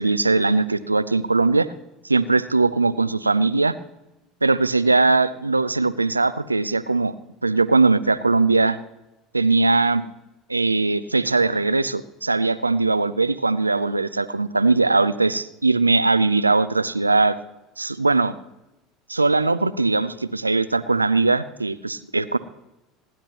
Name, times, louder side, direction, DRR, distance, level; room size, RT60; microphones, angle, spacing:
voice 1, 0.0-1.7 2.0-3.7 4.4-7.1 7.4-8.8 9.3-10.0 10.5-17.4 17.8-18.3 19.1-22.4, right 3 dB, 90° right, 14 dB, 0.4 m, -20 dB
25.5 x 10.5 x 3.0 m, 0.95 s
figure-of-eight pair, 70°, 0 cm